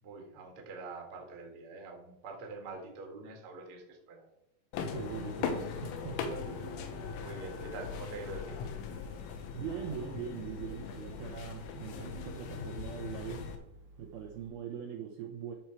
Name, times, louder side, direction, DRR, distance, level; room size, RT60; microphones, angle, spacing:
voice 1, 0.0-4.3 6.6-6.7 7.2-8.7, right 3 dB, 55° right, 1 dB, 1.5 m, -45 dB
sound 1, 4.7-13.6, left 6 dB, 80° left, 3.6 m, -40 dB
voice 2, 4.8-6.4 9.5-13.5 14.0-15.5, right 8 dB, 90° right, 1 dB, 2.1 m, -41 dB
Organ, 5.4-14.5, right 2 dB, 75° right, 1.8 m, -53 dB
13.0 x 4.9 x 4.5 m, 0.86 s
omnidirectional pair, 5.7 m